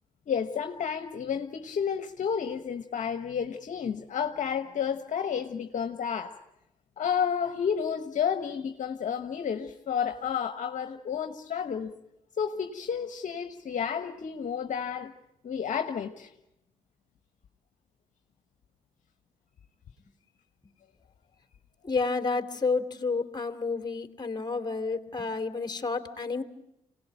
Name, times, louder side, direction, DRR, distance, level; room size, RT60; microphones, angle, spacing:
voice 1, 0.3-6.4 7.0-11.9 12.4-15.1 15.4-16.3, left 7 dB, 60° left, 7 dB, 1.3 m, -31 dB
voice 2, 21.8-26.4, left 4 dB, 30° left, 7 dB, 2.6 m, -30 dB
26.0 x 18.5 x 9.0 m, 0.87 s
supercardioid pair, 55°, 14 cm